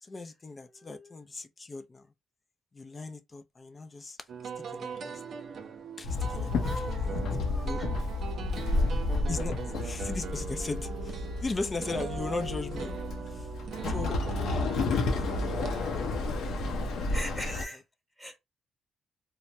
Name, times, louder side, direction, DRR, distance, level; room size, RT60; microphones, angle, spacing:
voice 1, 0.0-2.1 2.7-4.2 4.7-5.2 6.0-6.7 7.0-7.8 9.3-13.0 13.3-13.5 13.9-14.2 14.5-16.9, left 3 dB, 30° left, 0.5 m, -39 dB
voice 2, 0.7-1.2 6.6-7.1 7.4-7.9 17.1-17.8 18.2-18.4, equal, 10° left, 1.3 m, -41 dB
sound 1, 4.3-16.1, right 6 dB, 65° right, 0.6 m, -41 dB
Walk footsteps / Chatter / Hiss, 6.0-17.6, left 2 dB, 75° left, 0.7 m, -31 dB
3.2 x 2.1 x 2.6 m
cardioid pair, 90°, 0 cm